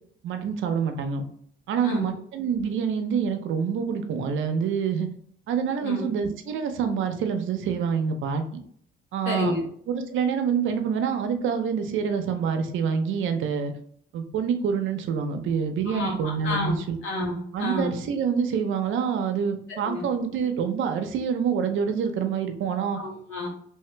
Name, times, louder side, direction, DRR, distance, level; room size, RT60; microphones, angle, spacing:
voice 1, 0.2-1.2 1.7-5.1 5.5-8.4 9.1-9.5 9.9-13.7 14.1-17.0 17.5-23.0, right 6 dB, 80° right, 6 dB, 0.6 m, -26 dB
voice 2, 1.8-2.1 5.8-6.1 9.2-9.6 15.9-16.8 17.0-18.0 19.9-20.0 23.0-23.5, left 2 dB, 80° left, -2 dB, 1.5 m, -30 dB
3.2 x 2.8 x 3.3 m, 0.62 s
cardioid pair, 90°, 20 cm